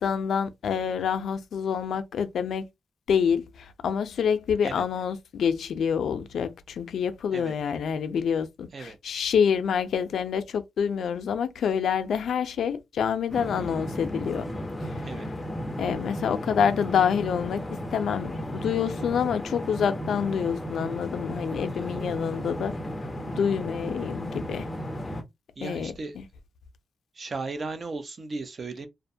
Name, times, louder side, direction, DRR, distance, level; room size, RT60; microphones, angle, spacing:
voice 1, 0.0-2.7 3.1-14.5 14.8-15.1 15.8-17.6 17.9-22.7 23.4-24.7 25.6-26.3, left 7 dB, 75° left, 0.4 m, -27 dB
sound 1, 13.3-25.2, equal, 15° left, 0.5 m, -34 dB
voice 2, 25.6-26.1 27.1-28.9, right 3 dB, 40° right, 0.5 m, -36 dB
2.5 x 2.1 x 2.6 m
wide cardioid pair, 145°, 0 cm